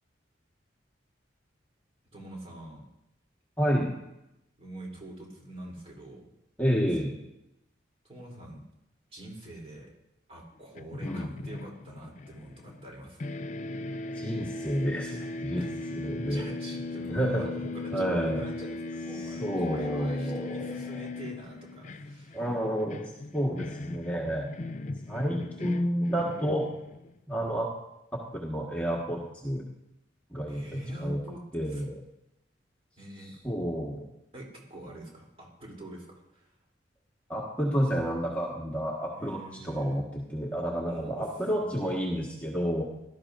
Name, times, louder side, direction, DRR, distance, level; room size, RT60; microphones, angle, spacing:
voice 1, 2.1-2.8 4.6-6.3 8.0-8.6 9.1-9.9 10.3-13.2 15.5-22.4 27.3-27.5 30.5-31.4 31.7-31.8 33.0-33.3 34.3-36.5 39.1-40.0 40.9-41.2 41.6-41.9, right 1 dB, 30° right, -2 dB, 3.3 m, -45 dB
voice 2, 3.6-3.9 6.6-7.1 11.0-11.3 14.1-15.6 16.0-16.4 17.1-17.5 17.9-18.5 19.4-21.0 22.3-24.5 25.1-26.7 27.3-27.7 28.1-29.6 30.3-31.2 31.5-32.0 33.4-34.0 37.3-42.8, equal, 10° left, -4 dB, 1.5 m, -30 dB
sound 1, 10.7-12.9 13.2-27.2, left 3 dB, 40° left, 0.4 m, -38 dB
18.0 x 12.5 x 2.6 m, 0.86 s
head